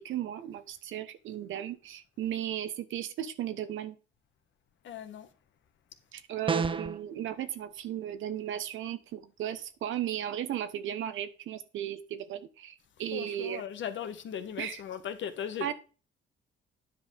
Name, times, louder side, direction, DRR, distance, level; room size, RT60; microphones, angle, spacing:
voice 1, 0.0-4.0 6.1-13.6 14.6-14.8 15.6-15.7, right 11 dB, 80° right, 1.1 m, -35 dB
voice 2, 4.8-5.3 13.1-15.7, left 9 dB, 70° left, 1.4 m, -38 dB
sound 1, 6.5-7.0, right 4 dB, 25° right, 0.7 m, -29 dB
9.7 x 5.4 x 5.2 m
cardioid pair, 90°, 20 cm